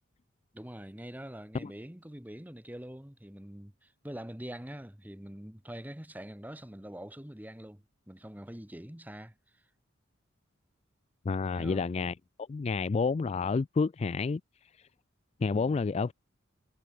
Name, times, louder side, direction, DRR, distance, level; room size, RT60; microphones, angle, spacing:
voice 1, 0.5-9.6 11.5-11.8 15.5-15.8, equal, 10° right, 1.4 m, -45 dB
voice 2, 11.3-12.1 12.5-14.4 15.4-16.1, left 4 dB, 30° left, 0.3 m, -29 dB
head